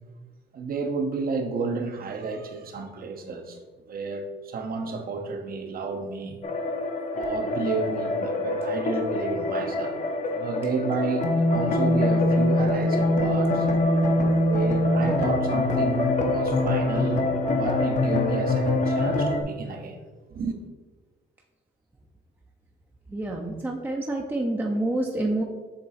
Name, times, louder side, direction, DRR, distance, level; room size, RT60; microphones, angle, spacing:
voice 1, 0.5-3.6 3.9-6.4 7.1-10.0 10.3-13.7 14.4-17.3 17.5-20.0 20.3-20.5, right 4 dB, 50° right, 0.9 m, -31 dB
sound 1, 6.4-19.4, left 1 dB, 40° left, 0.8 m, -24 dB
voice 2, 23.1-25.4, right 1 dB, 10° right, 0.6 m, -27 dB
7.6 x 3.0 x 4.2 m
cardioid pair, 115°, 19 cm